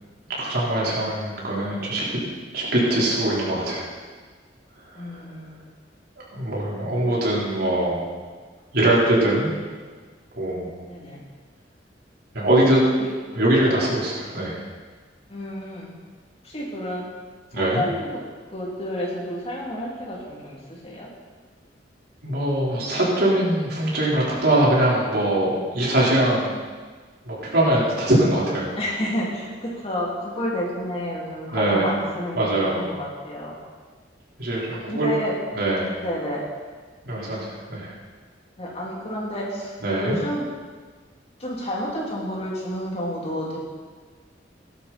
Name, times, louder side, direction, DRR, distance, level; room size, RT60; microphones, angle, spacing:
voice 1, 0.3-2.0 2.5-3.9 4.9-5.2 6.3-8.1 8.7-9.5 10.3-10.7 12.3-12.8 13.3-14.6 17.5-17.8 22.2-26.5 27.2-28.8 31.5-31.9 32.3-32.9 34.4-35.1 35.5-35.9 37.0-37.9 39.8-40.2, right 1 dB, 60° right, -6 dB, 4.8 m, -22 dB
voice 2, 4.9-5.6 10.9-11.2 13.0-13.1 15.3-15.9 16.4-17.0 17.5-18.2 18.5-21.1 28.8-32.5 32.7-33.5 34.9-35.3 36.0-36.4 38.6-39.7 40.0-40.4 41.4-43.6, equal, 35° left, -4 dB, 3.3 m, -30 dB
17.5 x 12.0 x 4.5 m, 1.5 s
head